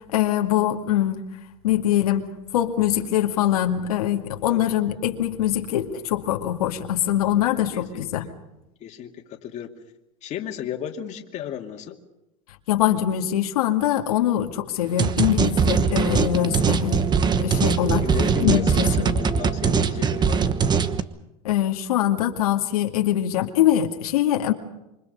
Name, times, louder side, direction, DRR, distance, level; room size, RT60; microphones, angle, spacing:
voice 1, 0.1-1.3 1.6-8.3 12.7-18.0 18.4-19.1 21.4-24.5, left 12 dB, 90° left, 3 dB, 2.2 m, -23 dB
voice 2, 7.7-8.3 8.8-9.7 10.2-12.0 18.0-20.5, left 9 dB, 40° left, 3 dB, 2.5 m, -34 dB
sound 1, 15.0-21.0, right 6 dB, 25° right, 1.2 m, -21 dB
27.0 x 24.5 x 5.5 m, 0.91 s
supercardioid pair, 130°, 19 cm